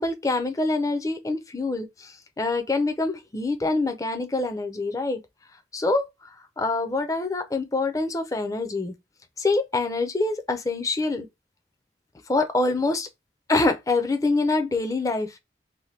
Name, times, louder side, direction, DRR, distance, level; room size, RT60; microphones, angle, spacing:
voice 1, 0.0-5.2 5.7-6.0 6.6-8.9 9.4-11.3 12.3-13.1 13.5-15.4, left 3 dB, 20° left, 0.4 m, -25 dB
2.8 x 2.1 x 3.1 m
head